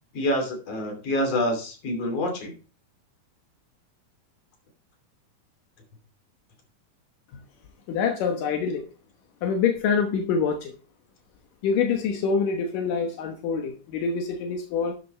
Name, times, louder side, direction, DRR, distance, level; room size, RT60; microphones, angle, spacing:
voice 1, 0.1-2.5, left 1 dB, 50° left, 3 dB, 3.9 m, -27 dB
voice 2, 7.9-8.9 9.4-10.7 11.6-14.9, left 5 dB, 80° left, 4 dB, 2.8 m, -25 dB
11.5 x 8.4 x 3.2 m, 0.34 s
omnidirectional pair, 3.8 m